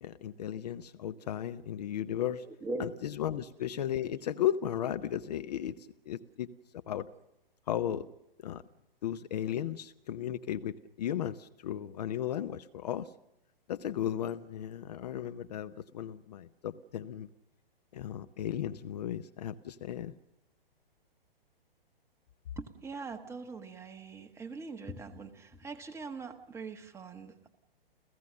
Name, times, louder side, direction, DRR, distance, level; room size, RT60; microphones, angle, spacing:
voice 1, 0.0-2.5 2.8-6.5 6.9-7.1 7.7-8.1 8.4-8.6 9.0-13.1 13.7-17.3 17.9-20.1, left 10 dB, 45° left, 12 dB, 0.8 m, -35 dB
voice 2, 2.4-2.8 22.6-27.5, right 3 dB, 10° right, 6 dB, 1.3 m, -42 dB
30.0 x 15.5 x 6.6 m, 0.88 s
figure-of-eight pair, 115°, 30 cm